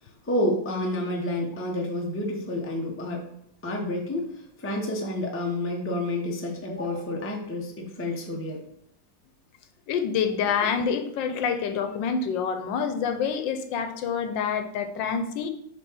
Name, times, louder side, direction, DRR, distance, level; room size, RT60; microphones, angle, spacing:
voice 1, 0.0-3.2 3.6-8.6, left 1 dB, 10° left, -1 dB, 0.7 m, -29 dB
voice 2, 9.9-15.5, left 6 dB, 80° left, 7 dB, 1.4 m, -27 dB
7.2 x 3.2 x 4.6 m, 0.74 s
omnidirectional pair, 2.0 m